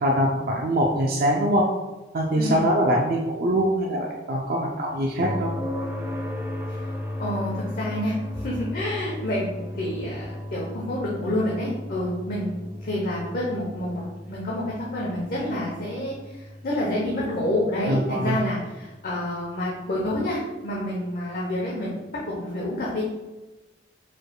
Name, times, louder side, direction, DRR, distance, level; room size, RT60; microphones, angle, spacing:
voice 1, 0.0-1.7 2.1-5.5 17.9-18.4, equal, 55° right, -1 dB, 0.5 m, -23 dB
sound 1, 5.2-19.1 21.3-21.4, left 1 dB, 10° right, 0.6 m, -35 dB
voice 2, 7.2-21.9 22.4-23.0, left 1 dB, 55° left, -4 dB, 0.8 m, -28 dB
4.8 x 4.4 x 2.3 m, 1.1 s
head